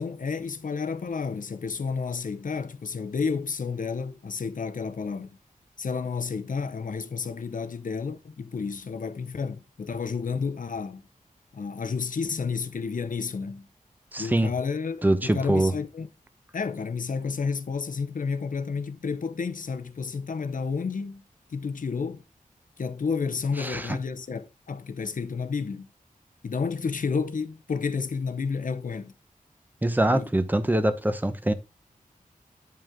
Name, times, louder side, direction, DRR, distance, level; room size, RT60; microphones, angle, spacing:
voice 1, 0.0-5.3 5.8-11.0 11.5-13.7 14.2-15.0 15.2-16.1 16.5-21.2 21.5-22.2 22.8-25.9 26.4-29.1 30.1-30.3, left 5 dB, 65° left, 0.9 m, -31 dB
voice 2, 14.1-14.5 15.0-15.7 23.6-23.8 29.8-31.5, right 1 dB, 10° right, 0.9 m, -23 dB
9.0 x 5.6 x 3.7 m
wide cardioid pair, 110°, 15 cm